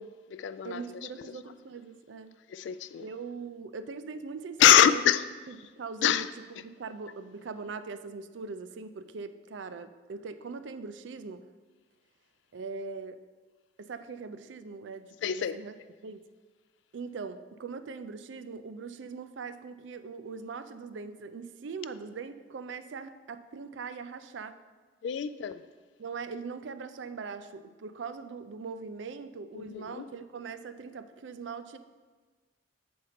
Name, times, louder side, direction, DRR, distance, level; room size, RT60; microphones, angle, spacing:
voice 1, 0.0-0.8 2.5-3.1 4.6-5.2 6.0-6.3 15.2-15.6 25.0-25.6 29.5-30.1, left 10 dB, 75° left, 0.3 m, -24 dB
voice 2, 0.6-2.3 3.0-5.0 5.5-11.4 12.5-13.2 13.8-15.7 16.0-16.2 16.9-24.6 26.0-31.8, right 5 dB, 85° right, 0.4 m, -41 dB
7.6 x 4.4 x 5.0 m
head